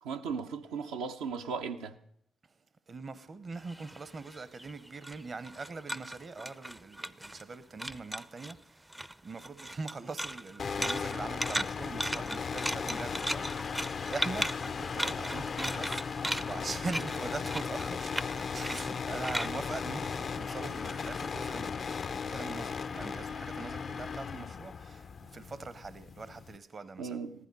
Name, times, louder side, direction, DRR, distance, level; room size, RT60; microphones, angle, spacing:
voice 1, 0.0-1.9 27.0-27.5, right 5 dB, 85° right, 0.7 m, -37 dB
voice 2, 2.9-27.2, right 4 dB, 45° right, 0.8 m, -42 dB
sound 1, 3.6-7.5 7.8-8.6 8.9-20.7, right 1 dB, 10° right, 0.4 m, -37 dB
sound 2, 10.6-26.6, left 6 dB, 55° left, 0.4 m, -37 dB
14.5 x 11.0 x 5.3 m
hypercardioid pair, 50°, 0 cm